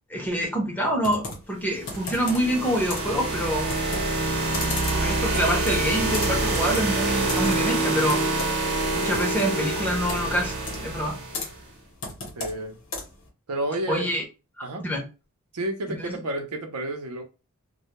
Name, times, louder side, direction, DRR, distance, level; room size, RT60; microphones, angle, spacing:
voice 1, 0.1-3.7 4.9-8.2 8.9-11.2 13.9-14.2 14.8-15.1 15.9-16.2, equal, 10° left, 0.6 m, -26 dB
Computer keyboard, 1.0-13.3, left 3 dB, 60° left, 0.8 m, -37 dB
sound 1, 1.7-11.6, right 2 dB, 45° right, 0.8 m, -26 dB
voice 2, 12.4-12.8 13.5-14.1 14.6-14.9 15.5-17.2, right 1 dB, 85° right, 0.6 m, -31 dB
2.1 x 2.1 x 2.9 m
head